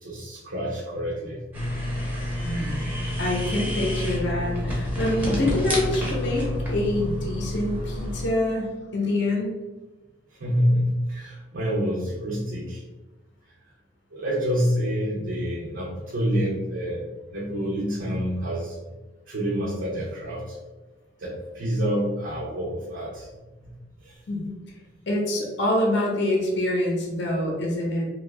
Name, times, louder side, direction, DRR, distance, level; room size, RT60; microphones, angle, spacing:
voice 1, 0.0-1.4 10.4-12.8 14.1-17.0 17.3-18.7 19.3-20.6 21.2-23.3 23.6-23.7 24.0-24.1, equal, 70° right, -5 dB, 0.6 m, -27 dB
sound 1, 1.5-8.3, left 1 dB, 10° right, 0.6 m, -29 dB
voice 2, 2.4-9.5 24.3-24.5 25.1-28.1, left 1 dB, 55° left, -2 dB, 0.6 m, -26 dB
2.7 x 2.3 x 3.2 m, 1.2 s
head